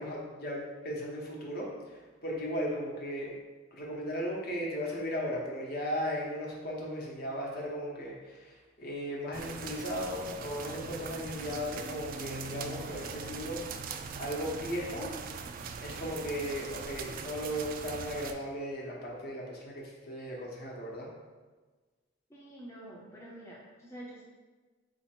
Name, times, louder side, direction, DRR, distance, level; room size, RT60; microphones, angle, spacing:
voice 1, 0.0-3.3 3.7-13.9 14.2-15.1 15.8-21.1, equal, 50° left, -3 dB, 0.9 m, -36 dB
sound 1, 9.3-18.3, right 5 dB, 45° right, 0.3 m, -41 dB
voice 2, 22.3-24.2, right 1 dB, 15° left, -5 dB, 0.6 m, -47 dB
4.0 x 2.8 x 4.3 m, 1.3 s
head